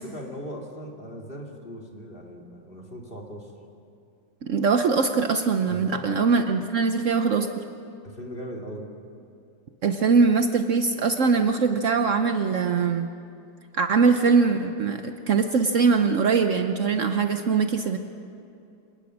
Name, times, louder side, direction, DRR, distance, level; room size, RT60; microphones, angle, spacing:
voice 1, 0.0-3.5 5.7-6.1 8.0-8.9, equal, 25° left, 0 dB, 2.4 m, -39 dB
voice 2, 4.4-7.5 9.8-13.1 13.7-18.0, right 5 dB, 90° right, 7 dB, 0.6 m, -22 dB
26.0 x 19.0 x 6.2 m, 2.6 s
omnidirectional pair, 2.4 m